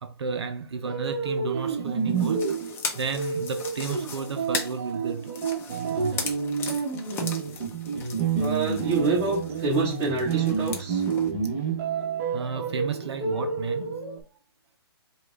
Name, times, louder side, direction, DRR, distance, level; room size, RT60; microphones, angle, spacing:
voice 1, 0.0-2.5 2.9-5.3 5.7-6.3 12.3-14.0, right 5 dB, 80° right, 0.6 m, -32 dB
sound 1, 0.8-14.2, right 6 dB, 35° right, 1.4 m, -29 dB
sound 2, 2.1-11.3, left 5 dB, 15° left, 0.7 m, -38 dB
voice 2, 8.3-11.0, right 3 dB, 20° right, 2.0 m, -27 dB
4.7 x 2.4 x 3.5 m
hypercardioid pair, 140°, 14 cm